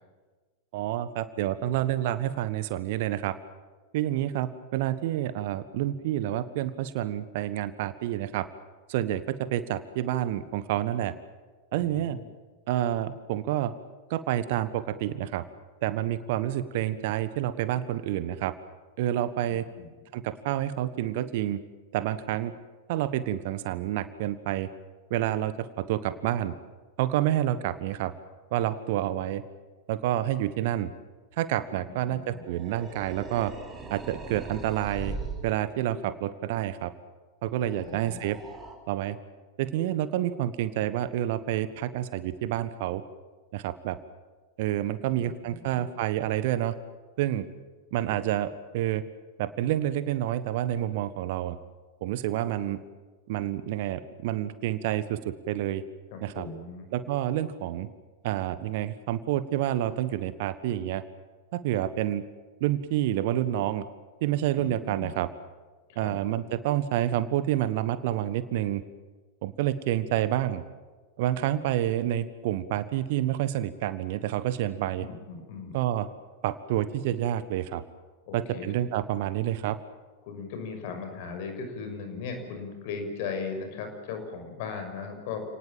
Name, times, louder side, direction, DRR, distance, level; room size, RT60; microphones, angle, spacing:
voice 1, 0.7-3.4 3.9-8.5 8.9-11.1 11.7-12.2 12.7-13.7 14.1-15.4 15.8-18.5 19.0-19.6 20.1-21.6 21.9-22.5 22.9-24.7 25.1-26.5 27.0-28.1 28.5-29.4 29.9-30.9 31.4-33.5 33.9-35.2 35.4-36.9 37.4-38.4 38.9-39.2 39.6-43.0 43.5-44.0 44.6-46.8 47.2-47.5 47.9-49.0 49.4-51.6 52.0-52.8 53.3-55.8 56.2-56.4 56.9-57.9 58.2-61.0 61.5-62.2 62.6-63.8 64.2-65.3 66.0-68.8 69.4-70.6 71.2-75.1 75.7-76.1 76.4-77.8 78.3-79.8, right 12 dB, 50° right, 14 dB, 1.4 m, -28 dB
voice 2, 11.7-12.2 19.4-19.9 31.8-32.4 37.6-38.2 45.1-45.9 56.1-56.9 64.6-65.2 65.9-66.2 75.0-75.8 78.3-78.7 80.2-85.4, left 5 dB, 50° left, 5 dB, 6.1 m, -38 dB
sound 1, 32.2-35.5 37.6-38.8, right 3 dB, 15° right, 4.5 m, -40 dB
29.5 x 19.5 x 7.6 m, 1.3 s
figure-of-eight pair, 90°, 0 cm